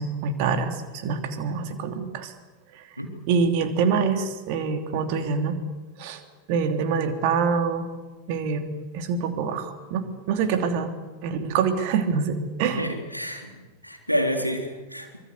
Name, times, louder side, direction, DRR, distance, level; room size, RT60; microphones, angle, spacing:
voice 1, 0.0-2.3 3.3-5.6 6.0-6.2 6.5-7.9 8.3-10.9 11.2-12.9, right 5 dB, 45° right, 7 dB, 3.0 m, -25 dB
voice 2, 12.8-15.2, equal, 90° right, 3 dB, 3.7 m, -29 dB
25.0 x 23.0 x 8.3 m, 1.3 s
figure-of-eight pair, 90°, 0 cm